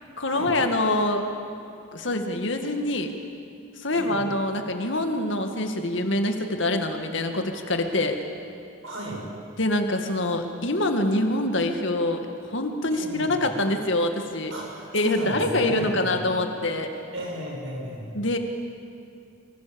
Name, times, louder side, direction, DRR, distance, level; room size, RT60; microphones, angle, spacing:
voice 1, 0.2-1.3 1.9-3.1 3.8-8.2 9.6-14.5 14.9-16.9 18.1-18.4, left 1 dB, 65° left, 5 dB, 2.2 m, -25 dB
voice 2, 8.8-9.2 12.9-13.4 14.5-16.2 17.1-18.1, equal, 85° right, -1 dB, 6.7 m, -34 dB
24.5 x 24.0 x 7.1 m, 2.4 s
head